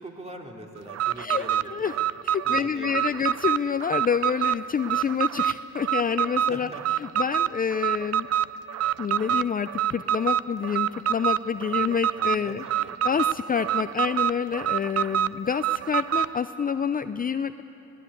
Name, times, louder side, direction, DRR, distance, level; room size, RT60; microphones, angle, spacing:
voice 1, 0.0-2.0 2.4-3.2 6.3-7.1 11.6-13.2, right 1 dB, 20° right, 1 dB, 2.9 m, -43 dB
Alarm, 0.9-16.4, right 10 dB, 55° right, 0.5 m, -26 dB
voice 2, 1.2-1.9 2.2-6.7 7.2-8.3 9.0-12.6 13.0-17.6, left 7 dB, 30° left, 10 dB, 0.5 m, -28 dB
22.0 x 19.0 x 8.4 m, 3.0 s
cardioid pair, 90°, 30 cm